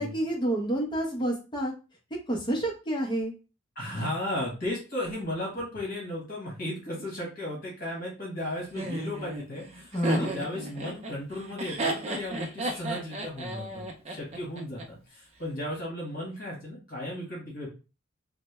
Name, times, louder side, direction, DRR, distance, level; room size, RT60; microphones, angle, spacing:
voice 1, 0.0-1.7 2.3-3.3 9.9-10.3, right 1 dB, 20° left, 0 dB, 0.6 m, -28 dB
voice 2, 3.7-17.7, left 1 dB, 40° left, -3 dB, 1.3 m, -35 dB
Laughter, 8.8-14.8, right 1 dB, 30° right, 0.5 m, -33 dB
3.2 x 2.1 x 3.2 m, 0.32 s
head